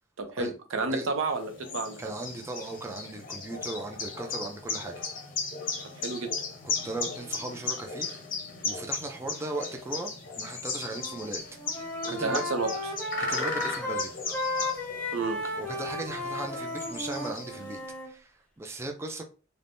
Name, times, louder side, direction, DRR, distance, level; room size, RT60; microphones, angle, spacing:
voice 1, 0.2-2.0 6.0-6.3 12.0-12.7 15.1-15.4, right 3 dB, 80° right, 0.6 m, -30 dB
sound 1, 1.3-17.8, left 4 dB, 45° left, 0.7 m, -36 dB
voice 2, 2.0-4.9 6.6-8.1 8.6-11.4 11.7-12.5 13.3-14.1 15.4-19.2, right 2 dB, 15° right, 0.3 m, -37 dB
Wind instrument woodwind instrument, 10.9-11.3 11.6-18.1, left 2 dB, 10° left, 0.7 m, -34 dB
3.3 x 2.1 x 2.5 m
head